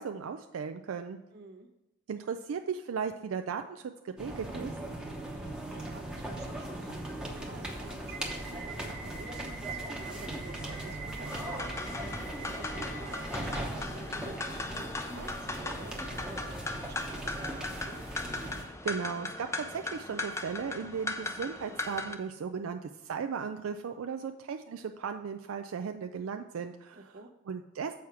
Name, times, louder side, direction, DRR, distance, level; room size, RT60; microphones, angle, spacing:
voice 1, 0.0-1.2 2.1-4.7 18.6-27.1 27.5-27.9, right 6 dB, 85° right, 7 dB, 0.4 m, -36 dB
voice 2, 1.3-1.7 5.3-18.1 26.9-27.3, right 3 dB, 55° right, 5 dB, 0.9 m, -51 dB
sound 1, 4.2-18.6, right 1 dB, 5° right, 0.8 m, -39 dB
sound 2, 6.3-12.5, left 4 dB, 70° left, 1.1 m, -54 dB
sound 3, 11.3-22.2, left 2 dB, 15° left, 0.5 m, -38 dB
7.1 x 4.8 x 5.8 m, 0.94 s
head